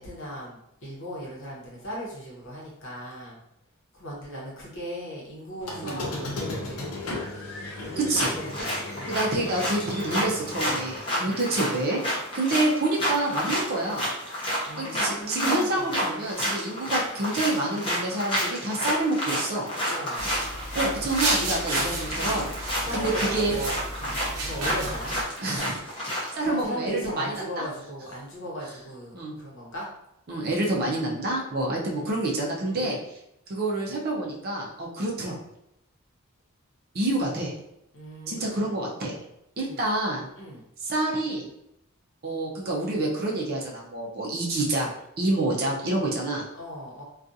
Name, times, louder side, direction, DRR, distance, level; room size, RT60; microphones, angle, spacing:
voice 1, 0.0-3.4 3.9-7.1 7.8-9.2 11.1-11.4 14.7-15.9 19.8-20.4 21.6-21.9 22.8-23.8 24.4-25.7 26.1-29.9 31.7-32.3 32.7-32.9 37.9-38.7 39.6-39.8 40.3-40.6 46.5-47.0, equal, 60° left, -4 dB, 0.9 m, -38 dB
Squeak, 5.6-11.0, left 2 dB, 80° left, 0.6 m, -36 dB
sound 1, 8.1-26.4, equal, 25° left, 0.7 m, -30 dB
voice 2, 9.1-12.0 12.3-14.1 14.8-19.7 20.7-23.6 25.4-25.8 26.3-27.3 29.1-29.3 30.3-33.0 33.5-35.4 36.9-37.5 38.3-39.2 39.6-40.3 40.8-41.4 42.2-44.9 45.2-46.4, right 2 dB, 45° right, -2 dB, 0.5 m, -27 dB
sound 2, 20.2-25.2, right 2 dB, 90° right, 0.6 m, -32 dB
2.4 x 2.3 x 2.6 m, 0.83 s
head